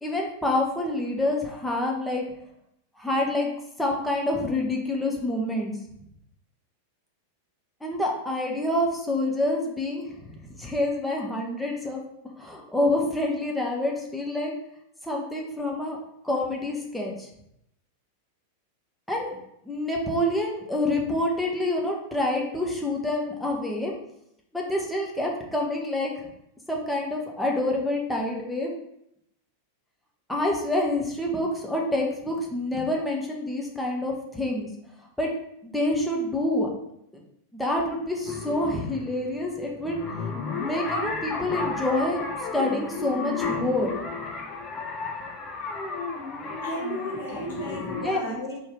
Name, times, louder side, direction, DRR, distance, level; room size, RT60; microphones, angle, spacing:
voice 1, 0.0-2.2 3.0-3.5 3.8-5.7 7.8-12.0 12.4-14.5 15.0-16.0 16.2-17.3 19.1-19.4 19.6-23.9 24.5-26.3 26.7-28.7 30.3-34.7 35.2-35.3 35.6-36.7 37.5-40.3 40.6-42.2 42.5-43.9 47.9-48.4, left 1 dB, 5° left, -2 dB, 1.0 m, -27 dB
sound 1, 38.3-48.1, left 4 dB, 25° left, 0.5 m, -33 dB
voice 2, 46.6-48.6, right 1 dB, 65° left, -5 dB, 1.6 m, -35 dB
4.5 x 3.2 x 3.7 m, 0.77 s
figure-of-eight pair, 90°, 0 cm